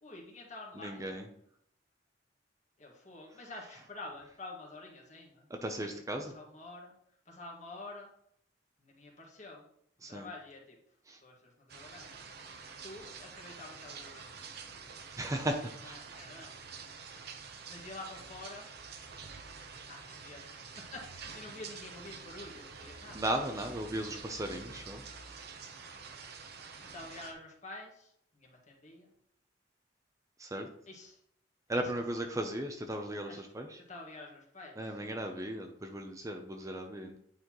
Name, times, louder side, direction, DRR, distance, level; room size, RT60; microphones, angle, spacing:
voice 1, 0.0-1.2 2.8-5.5 5.8-5.9 6.3-6.9 7.2-8.1 8.8-9.6 10.1-10.8 11.2-14.8 15.8-16.9 17.7-18.7 19.9-23.2 26.8-29.1 30.9-31.2 31.7-31.8 33.3-33.4 33.9-34.8, left 2 dB, 40° left, -1 dB, 1.7 m, -48 dB
voice 2, 0.7-1.3 5.5-6.3 10.0-10.3 11.1-11.2 15.1-16.0 17.1-17.2 23.1-25.0 30.4-30.7 31.7-33.8 34.8-37.2, right 1 dB, 20° right, 4 dB, 0.6 m, -36 dB
sound 1, 11.7-27.3, right 5 dB, 60° right, 0.8 m, -48 dB
9.3 x 4.2 x 3.0 m, 0.70 s
head